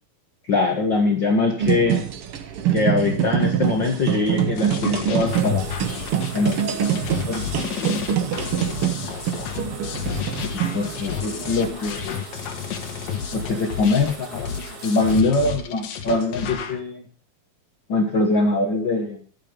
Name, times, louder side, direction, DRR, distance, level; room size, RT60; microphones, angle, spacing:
voice 1, 0.5-2.0 2.7-5.7 6.3-7.4 7.8-7.9 10.7-12.2 13.3-14.4 14.8-17.0 17.9-19.2, left 3 dB, 90° left, 3 dB, 1.0 m, -23 dB
sound 1, 1.6-11.7, right 10 dB, 85° right, 1.2 m, -25 dB
sound 2, 4.5-16.8, left 8 dB, 65° left, 2.9 m, -31 dB
sound 3, 5.3-15.2, right 3 dB, 40° right, 2.7 m, -40 dB
13.0 x 8.6 x 5.2 m, 0.43 s
omnidirectional pair, 4.4 m